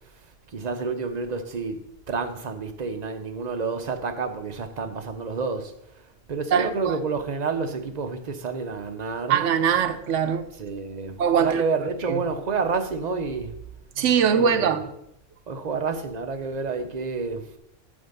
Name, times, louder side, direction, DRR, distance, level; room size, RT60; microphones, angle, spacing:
voice 1, 0.5-1.8 2.1-5.7 6.3-9.4 10.6-13.6 14.3-14.8 15.5-17.5, right 4 dB, 40° right, 0.8 m, -29 dB
voice 2, 6.5-7.0 9.3-10.5 11.2-11.6 12.1-12.2 14.0-14.8, right 7 dB, 75° right, 1.0 m, -22 dB
9.1 x 3.5 x 6.7 m
omnidirectional pair, 1.3 m